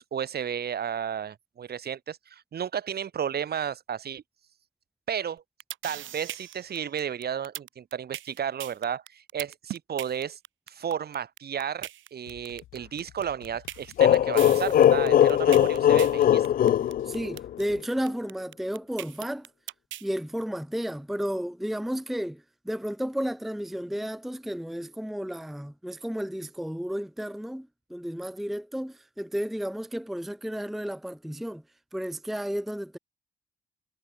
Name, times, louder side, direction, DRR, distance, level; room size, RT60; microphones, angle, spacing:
voice 1, 0.0-4.2 5.1-5.4 5.8-10.4 10.7-16.5, right 8 dB, 50° right, 2.1 m, -33 dB
sound 1, 5.4-20.1, right 13 dB, 75° right, 1.1 m, -39 dB
sound 2, 12.3-17.8, left 14 dB, 80° left, 2.4 m, -51 dB
sound 3, 14.0-17.7, left 10 dB, 50° left, 0.4 m, -20 dB
voice 2, 17.0-19.5 20.0-31.6 31.9-33.0, equal, ahead, 0.7 m, -32 dB
cardioid pair, 90°, 20 cm